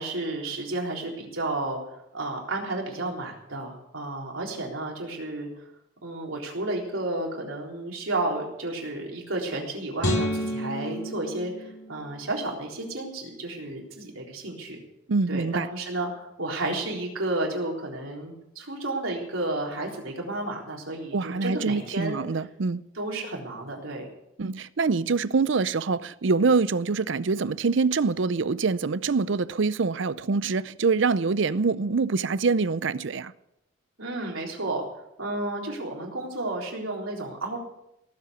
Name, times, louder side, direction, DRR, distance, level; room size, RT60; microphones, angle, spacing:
voice 1, 0.0-5.5 6.0-14.8 15.3-22.2 22.9-24.1 34.0-34.9 35.2-37.6, right 2 dB, 85° right, 3.9 m, -32 dB
sound 1, 10.0-12.4, equal, 60° left, 3.2 m, -30 dB
voice 2, 15.1-15.7 21.1-22.8 24.4-33.3, right 4 dB, 65° right, 0.5 m, -25 dB
18.0 x 7.9 x 8.0 m
head